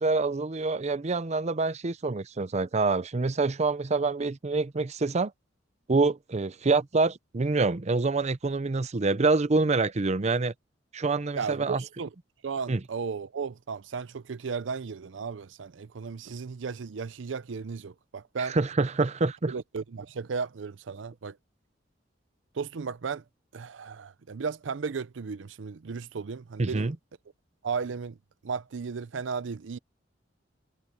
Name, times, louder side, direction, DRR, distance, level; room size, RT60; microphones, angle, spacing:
voice 1, 0.0-5.3 5.9-10.5 10.9-11.8 12.7-12.8 18.4-19.5 26.6-27.0, right 3 dB, 40° right, 0.6 m, -26 dB
voice 2, 11.4-12.1 12.4-18.6 19.5-21.4 22.5-23.2 23.5-26.9 27.6-28.2 28.4-29.8, right 5 dB, 85° right, 0.5 m, -35 dB
head